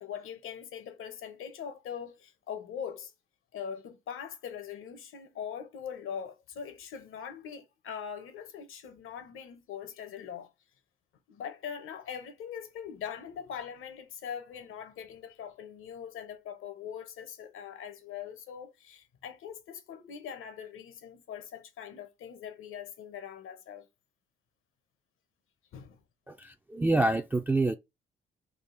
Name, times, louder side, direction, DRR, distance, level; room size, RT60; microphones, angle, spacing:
voice 1, 0.0-3.1 3.5-10.5 11.3-23.9 25.7-26.0, left 8 dB, 75° left, 1.0 m, -42 dB
voice 2, 26.3-27.8, right 2 dB, 10° right, 0.3 m, -27 dB
3.6 x 2.4 x 3.9 m
cardioid pair, 80°, 21 cm